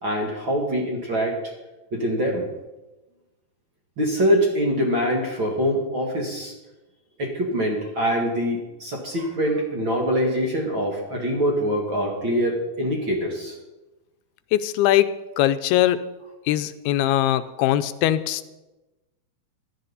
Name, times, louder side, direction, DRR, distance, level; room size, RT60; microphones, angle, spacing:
voice 1, 0.0-1.5 1.9-2.5 4.0-6.5 7.2-13.5, equal, 40° right, -1 dB, 1.9 m, -24 dB
voice 2, 14.5-16.0 16.5-18.5, left 13 dB, 90° left, 13 dB, 2.5 m, -21 dB
15.5 x 12.0 x 4.1 m, 1.1 s
omnidirectional pair, 4.4 m